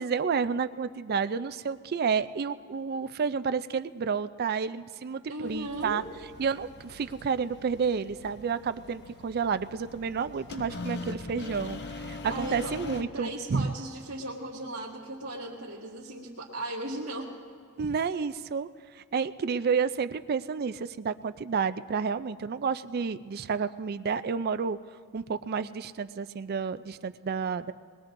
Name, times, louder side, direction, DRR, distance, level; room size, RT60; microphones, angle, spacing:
voice 1, 0.0-6.0 6.4-13.7 17.8-18.7 19.0-24.8 25.1-27.7, right 5 dB, 45° right, 12 dB, 0.4 m, -30 dB
voice 2, 5.3-6.1 12.3-17.3, right 1 dB, 80° right, -7 dB, 1.9 m, -37 dB
sound 1, 5.4-13.0, left 3 dB, 50° left, 0.8 m, -42 dB
22.0 x 21.0 x 2.6 m, 2.2 s
head